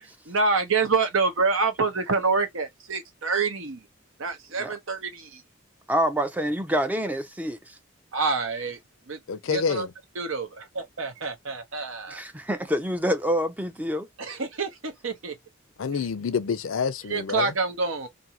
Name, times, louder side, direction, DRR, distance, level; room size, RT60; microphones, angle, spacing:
voice 1, 0.3-3.8 4.2-5.4 8.1-8.8 9.1-9.2 9.5-9.9 10.2-10.5 10.7-12.2 14.2-15.3 17.1-18.1, right 4 dB, 80° right, 0.9 m, -27 dB
voice 2, 5.9-7.6 12.1-14.1, equal, 10° right, 0.4 m, -26 dB
voice 3, 9.3-9.9 15.8-17.5, left 6 dB, 80° left, 0.5 m, -27 dB
2.7 x 2.5 x 2.8 m
head